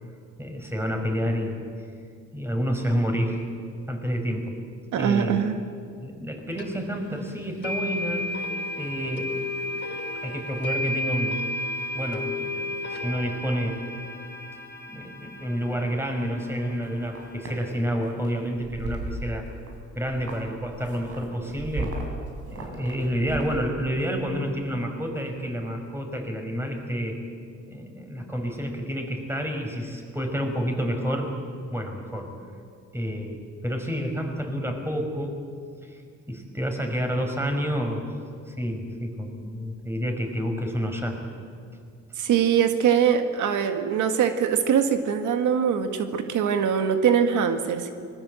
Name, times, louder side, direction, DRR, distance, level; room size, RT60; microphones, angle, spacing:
voice 1, 0.4-1.6 2.3-3.4 3.9-4.6 5.0-5.5 6.0-8.3 8.8-9.3 10.2-11.4 11.9-13.8 14.9-19.5 19.9-22.0 22.5-27.2 27.7-31.3 31.7-32.3 32.9-35.4 35.8-36.0 36.3-38.1 38.5-41.2, equal, 10° right, 3 dB, 5.2 m, -29 dB
voice 2, 4.9-5.5 42.2-47.9, right 8 dB, 80° right, 7 dB, 1.7 m, -22 dB
sound 1, 6.6-6.7 7.6-17.7, left 1 dB, 35° left, 3.3 m, -33 dB
sound 2, 16.8-17.5 18.0-18.3 18.6-19.7 20.0-23.6, right 2 dB, 50° right, 6.7 m, -36 dB
26.0 x 21.0 x 7.8 m, 2.2 s
cardioid pair, 90°, 30 cm